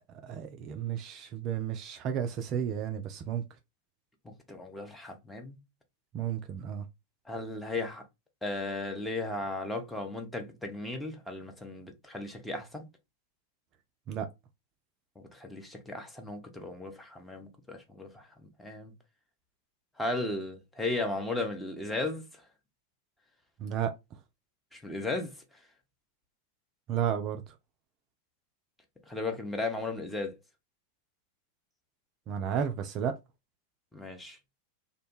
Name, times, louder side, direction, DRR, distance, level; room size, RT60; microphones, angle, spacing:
voice 1, 0.0-3.6 6.1-6.9 14.1-14.3 23.6-24.2 26.9-27.6 32.3-33.2, right 8 dB, 35° right, 0.3 m, -33 dB
voice 2, 4.2-5.6 7.3-8.0 8.4-12.9 15.3-18.9 20.0-22.4 24.7-25.3 29.1-30.4 33.9-34.4, left 2 dB, 5° left, 0.7 m, -36 dB
2.6 x 2.1 x 3.0 m
figure-of-eight pair, 90°, 0 cm